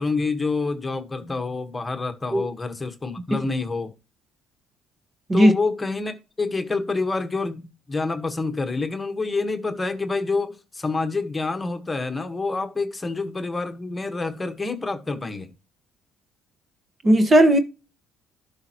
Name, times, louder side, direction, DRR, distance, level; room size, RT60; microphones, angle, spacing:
voice 1, 0.0-3.9 5.3-15.5, left 3 dB, 15° left, 1.4 m, -27 dB
voice 2, 17.0-17.6, right 1 dB, 25° right, 1.4 m, -15 dB
11.5 x 5.7 x 3.0 m
cardioid pair, 105°, 0 cm